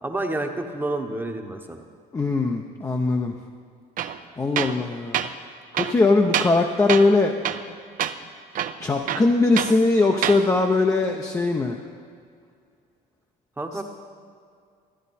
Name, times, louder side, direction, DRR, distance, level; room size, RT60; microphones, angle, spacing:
voice 1, 0.0-1.8 13.6-13.8, right 2 dB, 10° right, 5 dB, 0.9 m, -29 dB
voice 2, 2.1-3.3 4.4-5.3 5.8-7.3 8.8-11.8, left 3 dB, 20° left, 2 dB, 0.6 m, -20 dB
Tools, 4.0-4.2 4.6-4.8 5.1-5.3 5.7-6.6 6.9-7.2 7.4-7.7 8.0-8.2 8.5-9.8 10.1-10.4, right 10 dB, 55° right, 0.5 m, -26 dB
12.5 x 10.0 x 4.2 m, 2.3 s
cardioid pair, 110°, 17 cm